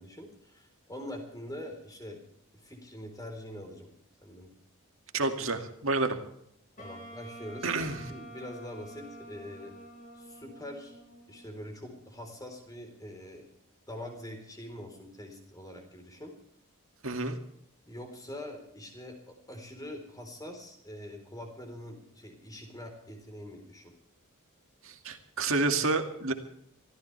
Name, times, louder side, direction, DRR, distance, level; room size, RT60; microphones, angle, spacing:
voice 1, 0.0-2.2 2.5-3.9 4.2-4.5 6.8-7.7 8.1-9.7 10.2-11.0 11.3-13.5 13.9-16.3 17.9-23.9, left 1 dB, 15° left, 4 dB, 4.1 m, -44 dB
voice 2, 5.1-6.2 7.6-8.0 17.0-17.4 24.8-26.3, right 3 dB, 60° right, 5 dB, 2.2 m, -29 dB
Wind instrument woodwind instrument, 6.8-11.8, right 1 dB, 35° left, 4.6 m, -48 dB
25.0 x 15.0 x 3.4 m, 0.71 s
head